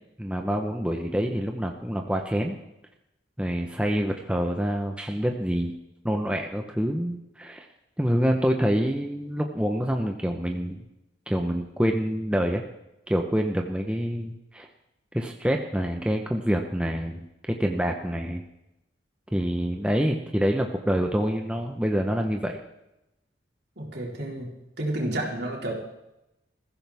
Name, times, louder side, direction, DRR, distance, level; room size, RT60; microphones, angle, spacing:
voice 1, 0.2-2.6 3.4-5.7 6.0-7.7 8.0-10.8 11.3-12.6 13.1-14.7 15.1-18.4 19.3-22.6, equal, 5° right, 2 dB, 0.9 m, -26 dB
voice 2, 23.8-24.5 24.8-25.7, right 1 dB, 65° right, -2 dB, 4.0 m, -30 dB
21.5 x 15.0 x 3.6 m, 0.90 s
head